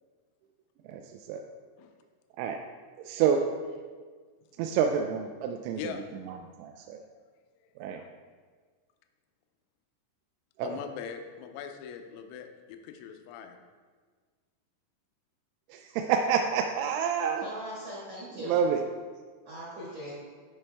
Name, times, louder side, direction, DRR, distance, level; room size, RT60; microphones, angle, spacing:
voice 1, 3.0-3.4 4.6-5.9 6.3-7.0 7.8-8.0 10.6-10.7 15.7-17.4 18.4-18.8, right 7 dB, 85° right, 3 dB, 2.8 m, -28 dB
voice 2, 10.6-13.6, left 8 dB, 80° left, 6 dB, 2.9 m, -41 dB
voice 3, 17.4-18.6 19.5-20.2, equal, 60° right, -6 dB, 1.7 m, -40 dB
12.5 x 5.5 x 3.5 m, 1.5 s
omnidirectional pair, 5.8 m